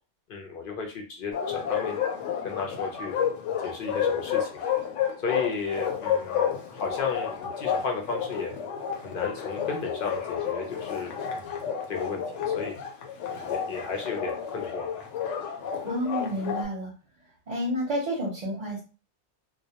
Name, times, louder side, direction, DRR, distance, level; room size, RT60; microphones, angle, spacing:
voice 1, 0.3-2.0 2.4-3.1 3.6-4.6 5.2-8.5 9.0-11.4 11.9-12.7 13.4-15.0, left 4 dB, 60° left, 1 dB, 0.6 m, -34 dB
Bark, 1.3-16.7, left 8 dB, 90° left, 0.9 m, -30 dB
voice 2, 15.8-16.9 17.5-18.8, equal, 45° right, -2 dB, 0.6 m, -30 dB
2.2 x 2.1 x 2.7 m, 0.34 s
omnidirectional pair, 1.2 m